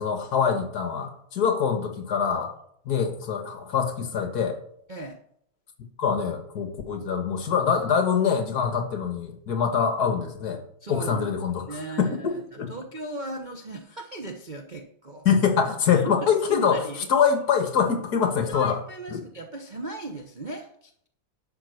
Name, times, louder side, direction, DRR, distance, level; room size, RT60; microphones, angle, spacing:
voice 1, 0.0-2.5 2.8-4.6 6.0-10.6 10.9-12.7 15.2-16.8 17.1-18.8 19.1-19.2, left 7 dB, 50° left, 6 dB, 1.6 m, -24 dB
voice 2, 10.8-11.4 11.7-12.4 12.7-15.3 15.9-17.0 18.5-21.1, right 2 dB, 75° right, 2 dB, 0.4 m, -37 dB
11.5 x 5.2 x 6.5 m, 0.66 s
omnidirectional pair, 2.4 m